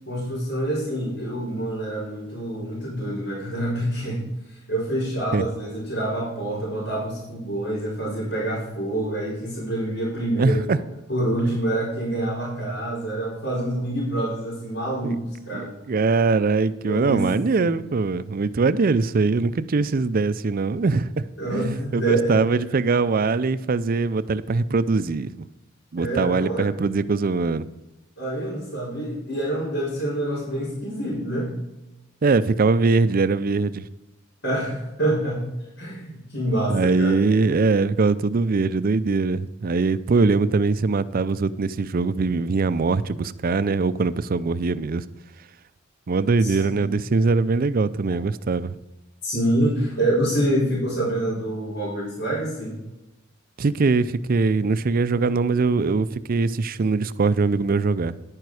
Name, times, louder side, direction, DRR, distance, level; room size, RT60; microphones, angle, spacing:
voice 1, 0.1-4.2 4.5-10.8 11.1-15.7 16.8-17.7 21.4-22.4 26.0-26.7 28.2-31.5 34.4-35.5 35.8-37.2 46.4-46.9 48.1-48.2 49.2-52.8, right 1 dB, 75° left, 4.6 m, -26 dB
voice 2, 10.4-10.8 11.5-11.6 15.0-15.2 15.5-25.3 25.9-27.7 32.2-33.9 36.7-45.0 46.1-48.8 53.6-58.1, right 4 dB, 45° right, 0.5 m, -22 dB
10.5 x 9.2 x 4.8 m
head